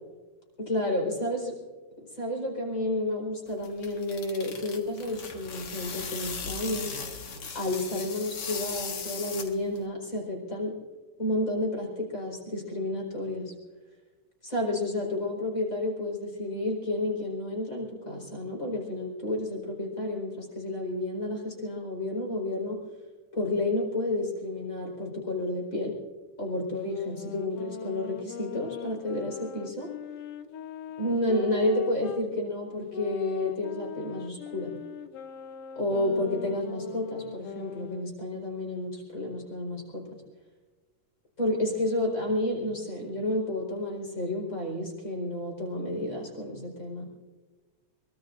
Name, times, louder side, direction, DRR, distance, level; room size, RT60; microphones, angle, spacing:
voice 1, 0.6-1.5 2.1-6.9 7.5-10.7 11.2-13.5 14.4-22.8 23.3-25.9 26.4-29.9 31.0-34.7 35.8-40.2 41.4-47.2, left 1 dB, 25° left, 0 dB, 4.8 m, -31 dB
sound 1, 3.5-9.8, left 5 dB, 55° left, 2.3 m, -38 dB
sound 2, 26.8-32.3 32.9-38.1, left 7 dB, 70° left, 1.6 m, -41 dB
23.5 x 22.0 x 2.6 m, 1.3 s
omnidirectional pair, 3.4 m